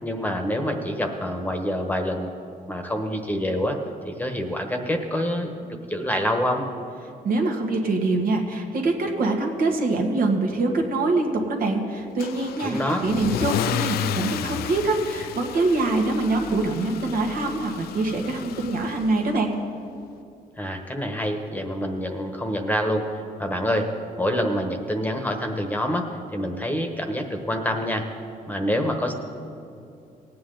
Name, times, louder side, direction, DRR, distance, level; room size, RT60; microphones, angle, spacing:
voice 1, 0.0-2.3 2.7-3.8 4.1-6.7 12.6-13.1 20.6-23.1 23.4-23.9 24.2-28.1 28.5-29.1, equal, 10° left, 4 dB, 1.1 m, -26 dB
voice 2, 7.2-19.5, right 2 dB, 70° right, 2 dB, 1.6 m, -24 dB
Car / Engine starting / Accelerating revving vroom, 12.2-19.3, left 11 dB, 90° left, 0.4 m, -32 dB
18.5 x 8.6 x 3.9 m, 2.6 s
cardioid pair, 110°, 15 cm